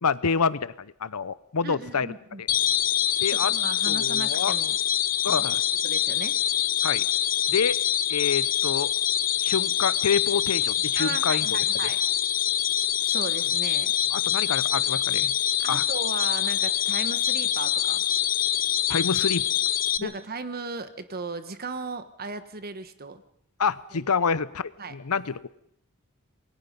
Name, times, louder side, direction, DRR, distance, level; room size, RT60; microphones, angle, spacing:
voice 1, 0.0-2.1 2.4-2.5 3.2-3.5 3.9-4.5 5.2-5.6 6.8-7.1 7.5-7.8 8.1-8.9 9.4-11.6 14.1-15.3 15.7-15.8 18.9-19.4 20.0-20.1 23.6-25.5, left 5 dB, 85° left, 17 dB, 0.8 m, -27 dB
voice 2, 1.6-2.4 3.3-4.8 5.3-5.4 5.8-6.4 11.0-12.0 13.0-13.9 15.6-18.0 20.0-23.2 23.9-24.1 24.8-25.0, right 4 dB, 45° right, 11 dB, 1.4 m, -36 dB
sound 1, 2.5-20.0, left 11 dB, 40° left, 0.8 m, -25 dB
28.0 x 21.5 x 5.4 m, 0.70 s
head